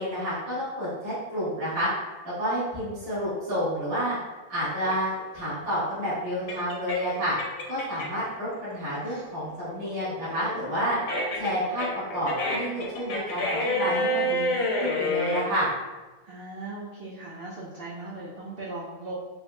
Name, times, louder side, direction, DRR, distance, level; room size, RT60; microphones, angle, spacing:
voice 1, 0.0-1.9 2.2-4.2 4.5-7.4 7.7-11.0 11.4-11.9 12.1-15.7, equal, 45° right, -13 dB, 1.7 m, -29 dB
sound 1, 4.9-8.3 8.7-15.4, left 1 dB, 80° left, 1.2 m, -29 dB
voice 2, 16.2-19.1, right 2 dB, 60° right, -5 dB, 0.6 m, -39 dB
4.4 x 2.7 x 2.2 m, 1.2 s
omnidirectional pair, 1.6 m